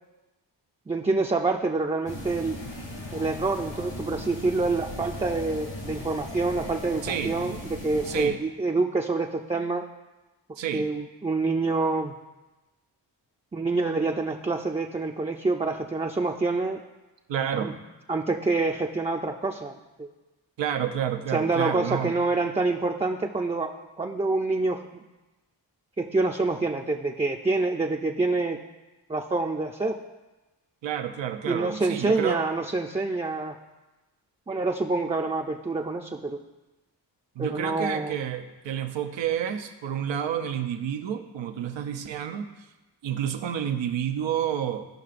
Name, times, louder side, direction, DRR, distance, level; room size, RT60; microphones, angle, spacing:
voice 1, 0.9-2.6 3.1-9.8 10.7-12.1 13.5-16.8 17.6-17.7 18.1-20.1 21.3-24.8 26.0-28.6 29.1-30.0 31.4-33.5 34.5-36.4 37.4-38.2, right 3 dB, 15° right, 1 dB, 0.5 m, -27 dB
sound 1, 2.1-8.3, left 1 dB, 85° left, 2.6 m, -38 dB
voice 2, 7.0-7.4 8.0-8.4 10.6-10.9 17.3-17.8 20.6-22.1 30.8-32.4 37.4-42.5 43.0-44.9, right 9 dB, 85° right, 7 dB, 0.7 m, -29 dB
13.5 x 5.6 x 2.5 m, 1.1 s
cardioid pair, 40°, 44 cm